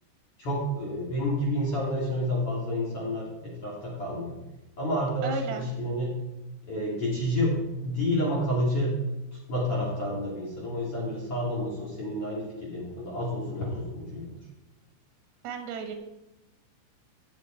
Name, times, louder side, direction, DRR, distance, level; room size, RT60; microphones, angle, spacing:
voice 1, 0.4-4.4 4.8-6.1 6.7-7.6 7.8-9.0 9.5-14.3, left 1 dB, 40° left, -5 dB, 3.3 m, -29 dB
voice 2, 5.2-5.6 15.4-16.0, right 6 dB, 85° right, 6 dB, 3.2 m, -34 dB
17.0 x 6.3 x 4.5 m, 0.97 s
omnidirectional pair, 4.3 m